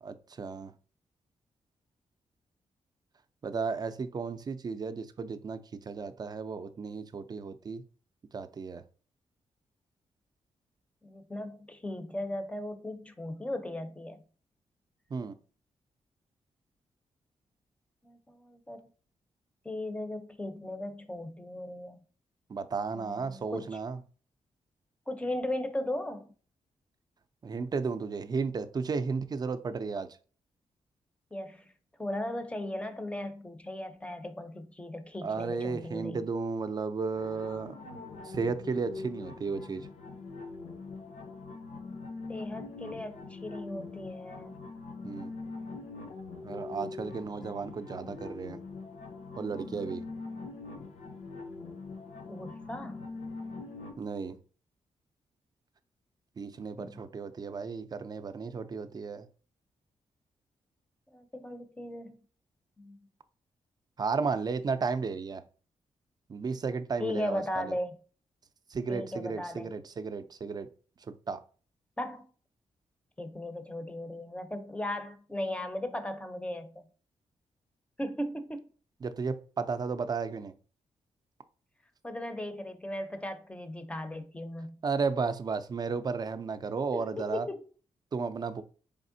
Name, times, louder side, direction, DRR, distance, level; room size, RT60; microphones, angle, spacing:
voice 1, 0.0-0.7 3.4-5.6 5.9-7.8 8.3-8.8 15.1-15.4 22.5-24.0 27.4-30.1 35.2-37.8 38.2-39.9 45.0-45.3 46.4-48.6 49.4-50.0 54.0-54.4 56.4-59.3 64.0-65.4 66.3-67.7 68.7-70.7 71.0-71.4 79.0-80.5 84.8-87.5 88.1-88.6, right 5 dB, 35° right, 0.4 m, -34 dB
voice 2, 11.0-14.2 18.0-18.8 19.6-22.0 22.9-23.7 25.1-26.3 31.3-31.7 32.0-36.3 42.3-44.6 52.3-53.1 56.8-56.9 61.1-62.2 62.8-63.0 67.0-68.0 68.9-69.7 72.0-72.2 73.2-76.8 78.0-78.7 82.0-84.8 86.9-87.6, left 1 dB, 10° left, 0.6 m, -37 dB
sound 1, 37.1-53.9, left 3 dB, 80° left, 0.8 m, -43 dB
4.1 x 3.5 x 2.6 m
cardioid pair, 110°, 11 cm